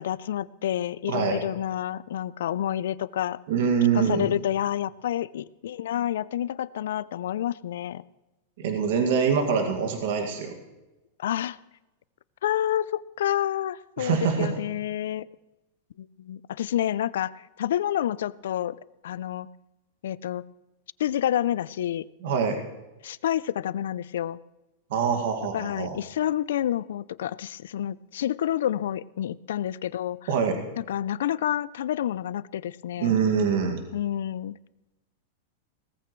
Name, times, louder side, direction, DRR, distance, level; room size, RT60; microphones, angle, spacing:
voice 1, 0.0-3.4 3.9-8.0 11.2-11.6 12.4-15.3 16.0-17.3 17.6-18.8 19.0-19.5 20.0-20.4 21.0-22.1 23.0-24.4 25.5-30.2 30.8-33.2 33.9-34.6, left 11 dB, 80° left, 20 dB, 0.4 m, -28 dB
voice 2, 1.1-1.4 3.5-4.3 8.6-10.5 14.0-14.5 22.2-22.6 24.9-26.0 30.3-30.6 33.0-33.8, right 6 dB, 60° right, 4 dB, 2.1 m, -24 dB
18.0 x 14.5 x 3.2 m, 1.0 s
supercardioid pair, 170°, 0 cm